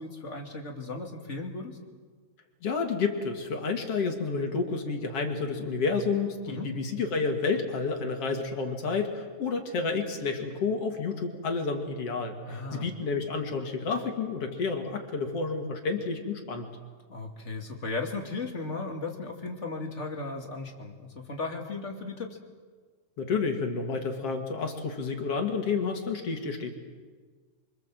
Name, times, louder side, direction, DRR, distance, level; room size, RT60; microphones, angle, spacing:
voice 1, 0.0-1.8 6.5-6.7 12.5-12.9 17.1-22.4, left 3 dB, 25° left, 2 dB, 2.4 m, -36 dB
voice 2, 2.6-16.7 23.2-26.7, left 4 dB, 55° left, 3 dB, 3.0 m, -30 dB
25.5 x 25.5 x 7.7 m, 1.5 s
omnidirectional pair, 3.5 m